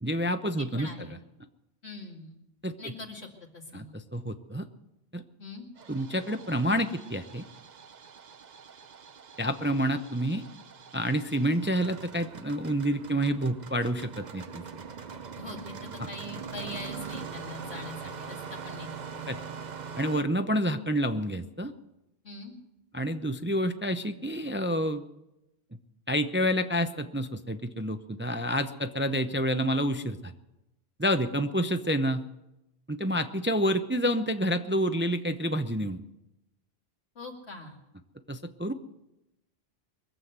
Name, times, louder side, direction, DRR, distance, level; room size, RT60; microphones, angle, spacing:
voice 1, 0.0-1.1 2.6-2.7 3.7-4.7 5.1-5.2 5.9-7.5 9.4-10.4 10.9-14.6 16.0-16.1 19.3-19.4 20.0-21.7 22.9-25.0 26.1-30.3 31.0-32.2 32.9-36.0 38.3-38.7, equal, 15° right, 8 dB, 0.5 m, -28 dB
voice 2, 0.6-1.1 1.8-2.4 2.8-3.3 3.5-3.9 5.4-5.7 15.4-19.3 22.2-22.5 37.1-37.8, left 2 dB, 75° left, 1 dB, 2.6 m, -42 dB
Engine starting, 5.8-20.2, right 6 dB, 45° right, 0.8 m, -43 dB
23.0 x 7.7 x 7.9 m, 0.93 s
omnidirectional pair, 1.1 m